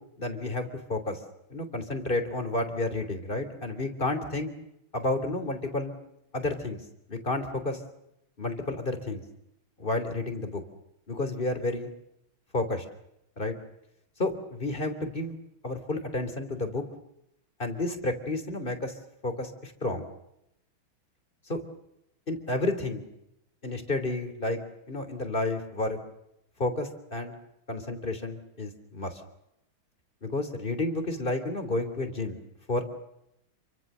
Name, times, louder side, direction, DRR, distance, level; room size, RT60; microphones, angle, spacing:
voice 1, 0.2-1.2 1.5-4.5 4.9-5.9 6.3-6.8 7.1-7.8 8.4-9.2 9.8-10.6 11.1-11.9 12.5-12.8 13.4-13.5 14.2-15.4 15.6-16.8 17.6-19.0 19.2-20.1 21.5-21.6 22.3-23.0 23.6-24.6 24.9-26.0 26.6-27.3 27.7-29.2 30.2-32.4 32.7-32.8, left 2 dB, 25° left, 7 dB, 3.2 m, -31 dB
28.5 x 24.5 x 6.8 m, 0.83 s
omnidirectional pair, 2.3 m